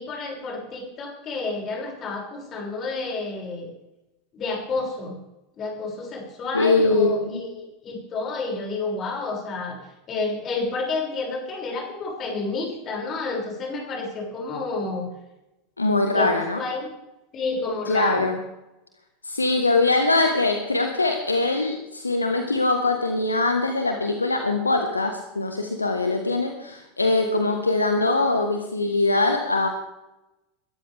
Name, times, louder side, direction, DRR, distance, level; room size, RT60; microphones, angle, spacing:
voice 1, 0.0-3.7 4.3-5.1 5.6-9.8 10.1-15.1 16.1-16.3 16.6-16.9 17.3-18.3, left 3 dB, 35° left, -1 dB, 6.6 m, -30 dB
voice 2, 6.5-7.4 15.8-16.6 17.8-18.4 19.2-29.7, left 2 dB, 80° left, 5 dB, 1.4 m, -22 dB
21.5 x 13.0 x 3.6 m, 0.93 s
figure-of-eight pair, 80°, 0 cm